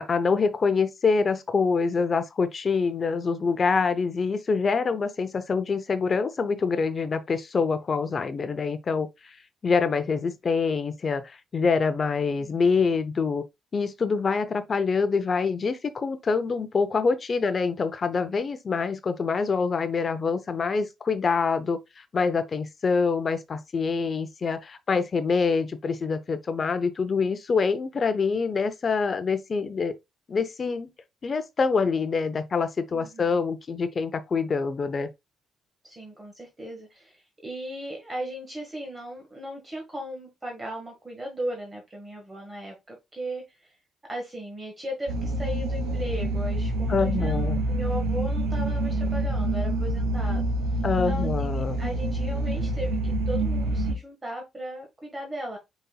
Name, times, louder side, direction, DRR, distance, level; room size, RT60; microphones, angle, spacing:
voice 1, 0.0-9.4 9.6-13.4 13.7-29.9 30.3-30.9 31.2-35.1 46.9-47.6 50.8-51.8, left 5 dB, 40° left, 0.5 m, -25 dB
voice 2, 32.9-33.4 35.8-43.7 44.1-50.4 51.1-55.6, right 1 dB, 20° right, 1.5 m, -37 dB
sound 1, 45.1-53.9, right 1 dB, 90° right, 1.0 m, -27 dB
5.3 x 4.0 x 2.2 m
cardioid pair, 90°, 0 cm